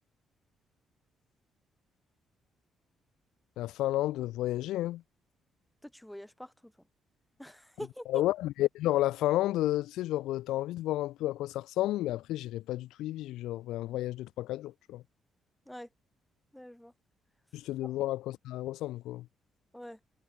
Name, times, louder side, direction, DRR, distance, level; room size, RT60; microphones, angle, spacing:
voice 1, 3.6-5.0 8.1-15.0 17.5-19.2, left 15 dB, 90° left, 1.1 m, -31 dB
voice 2, 5.8-6.5 7.4-8.2 15.7-15.9 16.5-16.9 17.8-17.9 19.7-20.0, equal, 5° left, 7.2 m, -44 dB
cardioid pair, 90°, 0 cm